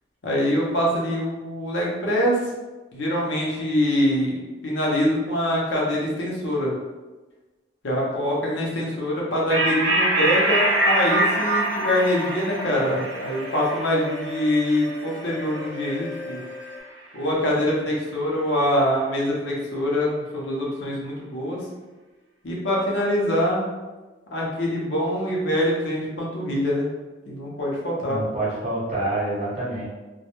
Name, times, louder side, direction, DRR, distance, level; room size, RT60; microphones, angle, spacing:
voice 1, 0.2-2.4 2.9-6.7 7.8-16.4 17.1-21.6 22.4-23.7 24.3-26.9 27.3-28.2, left 1 dB, 75° left, -4 dB, 0.7 m, -24 dB
sound 1, 9.5-16.4, right 1 dB, 70° right, 0.5 m, -25 dB
sound 2, 10.4-16.8, equal, 20° left, 0.5 m, -39 dB
voice 2, 28.0-29.8, right 2 dB, 35° right, -7 dB, 0.8 m, -27 dB
2.2 x 2.0 x 2.9 m, 1.2 s
head